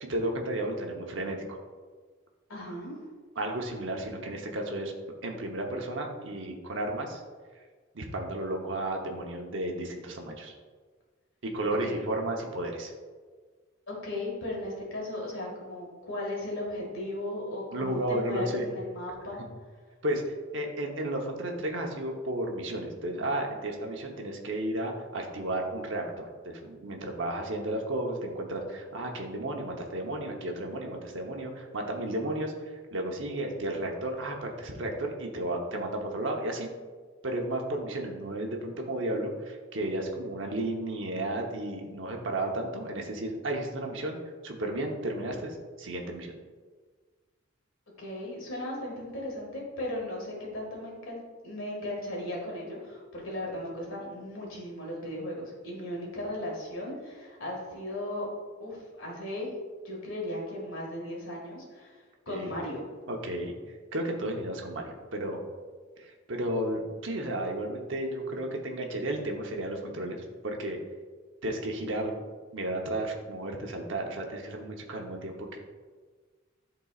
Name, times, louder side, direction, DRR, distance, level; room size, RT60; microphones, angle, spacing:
voice 1, 0.0-1.6 3.4-4.9 5.2-7.2 7.9-10.5 11.4-12.9 17.7-18.7 20.0-36.7 37.2-44.2 44.4-46.3 62.3-62.5 63.1-65.4 66.0-70.8 71.4-72.2 72.5-75.6, right 1 dB, 60° right, 1 dB, 0.9 m, -33 dB
voice 2, 2.5-3.0 11.8-12.0 13.9-19.4 48.0-58.3 58.6-59.5 59.8-62.9, left 1 dB, 70° left, -2 dB, 1.9 m, -36 dB
11.0 x 3.9 x 2.4 m, 1.5 s
head